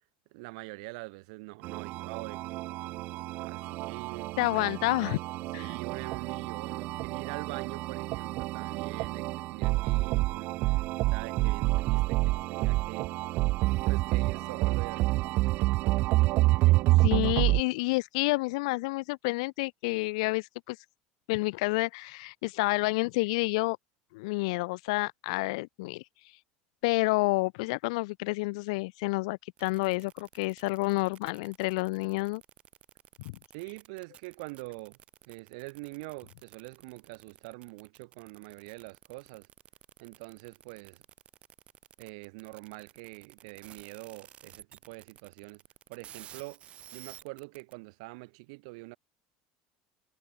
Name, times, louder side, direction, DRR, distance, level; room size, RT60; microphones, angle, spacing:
voice 1, 0.3-2.7 3.4-5.0 5.5-10.8 11.1-13.1 13.8-15.3 33.5-35.0 35.3-39.5 40.0-41.0 42.0-45.6 45.9-46.6 46.9-49.0, right 28 dB, 75° right, 2.2 m, -44 dB
sound 1, 1.6-17.6, right 19 dB, 50° right, 0.4 m, -28 dB
sound 2, 3.8-17.0, equal, ahead, 2.2 m, -60 dB
voice 2, 4.4-5.2 5.5-5.7 17.0-20.8 21.3-23.8 24.1-26.0 26.8-32.4 33.2-33.4, left 25 dB, 85° left, 0.5 m, -29 dB
sound 3, 29.6-47.7, right 11 dB, 35° right, 0.8 m, -53 dB
cardioid pair, 155°, 3 cm